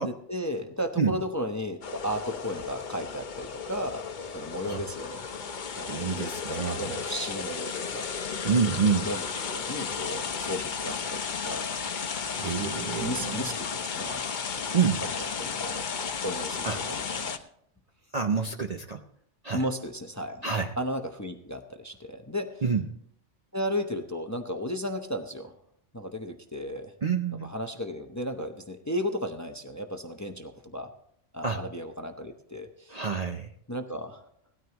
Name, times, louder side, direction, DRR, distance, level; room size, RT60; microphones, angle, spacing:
voice 1, 0.0-5.2 5.8-8.1 9.0-11.8 12.6-14.3 15.0-15.8 16.2-17.4 19.5-20.5 20.8-22.7 23.5-25.5 25.9-26.9 27.4-30.9 31.3-33.1 33.7-34.3, equal, 15° left, 6 dB, 0.7 m, -35 dB
sound 1, 1.8-17.4, left 6 dB, 45° left, 0.8 m, -34 dB
voice 2, 5.8-7.0 8.4-9.1 12.4-13.5 14.7-15.0 16.6-16.8 18.1-19.0 19.4-19.6 20.4-20.7 22.6-22.9 27.0-27.5 31.4-31.6 32.9-33.5, right 6 dB, 45° right, 5 dB, 0.6 m, -27 dB
17.5 x 13.0 x 2.9 m, 0.68 s
omnidirectional pair, 1.2 m